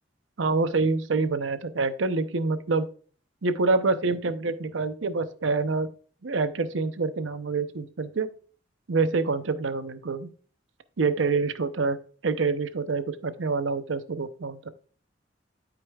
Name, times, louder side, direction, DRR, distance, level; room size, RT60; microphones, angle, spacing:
voice 1, 0.4-2.9 3.4-5.9 6.2-8.3 8.9-10.3 11.0-12.0 12.2-14.7, right 4 dB, 80° right, 11 dB, 0.7 m, -26 dB
12.0 x 5.0 x 2.3 m, 0.43 s
head